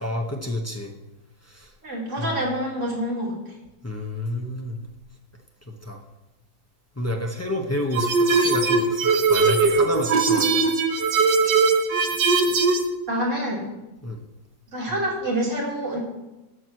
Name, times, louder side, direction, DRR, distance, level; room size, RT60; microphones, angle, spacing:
voice 1, 0.0-0.9 1.4-1.7 2.2-2.4 3.8-4.8 5.6-6.0 6.9-10.7 14.0-14.2, left 1 dB, 25° left, 1 dB, 0.3 m, -29 dB
voice 2, 1.8-3.6 11.4-11.5 13.1-13.6 14.7-16.0, equal, 40° right, -4 dB, 3.1 m, -27 dB
sound 1, 7.9-12.9, right 4 dB, 70° right, 1.6 m, -20 dB
13.0 x 4.6 x 7.6 m, 1.0 s
omnidirectional pair, 2.1 m